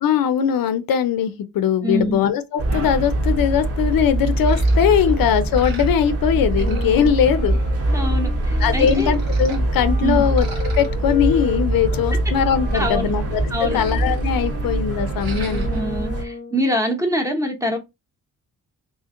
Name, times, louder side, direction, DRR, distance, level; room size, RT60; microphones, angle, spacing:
voice 1, 0.0-7.6 8.6-15.6, left 8 dB, 75° left, 0.5 m, -20 dB
voice 2, 1.8-2.2 7.9-9.2 10.0-10.2 12.7-13.1 13.5-13.8 15.7-17.8, equal, 10° right, 0.8 m, -24 dB
sound 1, 2.6-16.2, right 1 dB, 40° right, 1.0 m, -23 dB
sound 2, 4.5-6.1 6.4-8.0 8.4-9.6 10.1-13.2 13.5-14.7 15.1-15.8, right 3 dB, 85° right, 1.2 m, -40 dB
Wind instrument woodwind instrument, 6.5-16.6, left 4 dB, 25° left, 0.9 m, -36 dB
2.9 x 2.7 x 3.6 m
wide cardioid pair, 125°, 35 cm